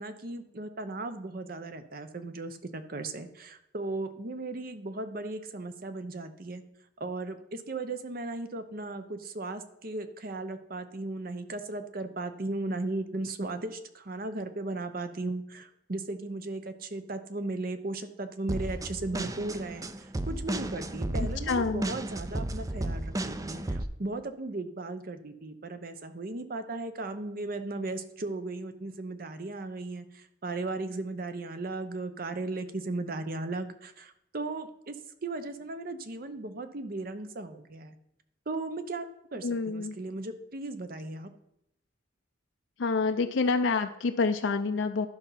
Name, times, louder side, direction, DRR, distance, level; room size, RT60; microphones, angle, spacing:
voice 1, 0.0-6.6 7.0-35.0 35.2-38.0 38.5-41.3, right 2 dB, 50° right, 10 dB, 0.8 m, -36 dB
sound 1, 18.5-23.8, right 1 dB, 20° right, 0.5 m, -33 dB
voice 2, 21.5-21.9 39.4-40.0 42.8-45.1, left 4 dB, 75° left, 6 dB, 0.5 m, -27 dB
11.5 x 5.5 x 5.7 m, 0.80 s
head